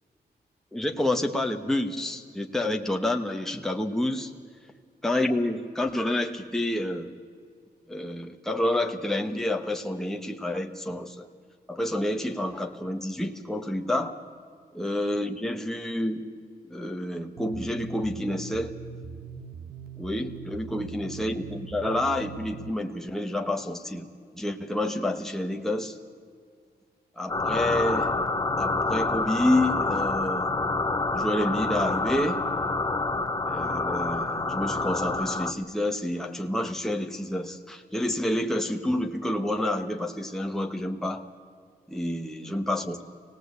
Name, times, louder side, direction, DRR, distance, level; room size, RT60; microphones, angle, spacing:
voice 1, 0.7-4.3 5.0-7.1 7.9-11.3 11.7-14.2 14.7-16.2 16.6-18.8 20.0-26.0 27.2-28.2 28.6-30.5 31.1-32.4 33.4-41.3 41.9-43.0, left 1 dB, ahead, 3 dB, 1.3 m, -29 dB
sound 1, 17.4-22.7, right 6 dB, 65° right, 1.1 m, -41 dB
sound 2, 27.3-35.5, left 3 dB, 20° left, 1.1 m, -27 dB
25.0 x 18.5 x 8.3 m, 2.1 s
wide cardioid pair, 130°, 17 cm